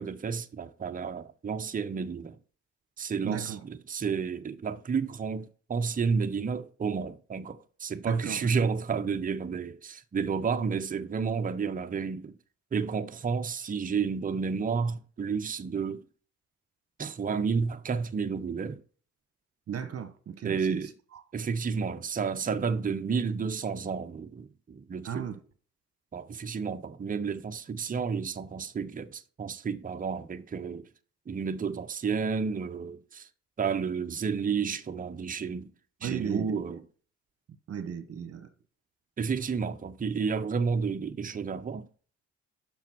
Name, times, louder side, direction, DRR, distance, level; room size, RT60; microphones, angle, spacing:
voice 1, 0.0-2.4 3.0-12.3 12.7-16.0 17.0-18.8 20.4-20.9 21.3-25.3 26.1-30.9 31.3-33.3 33.6-35.7 36.0-36.8 39.2-41.9, right 5 dB, 25° right, 0.7 m, -31 dB
voice 2, 3.2-3.6 8.1-8.5 19.7-20.9 25.0-25.4 36.0-36.6 37.7-38.5, right 8 dB, 50° right, 1.3 m, -35 dB
7.1 x 6.2 x 5.9 m
cardioid pair, 90°, 30 cm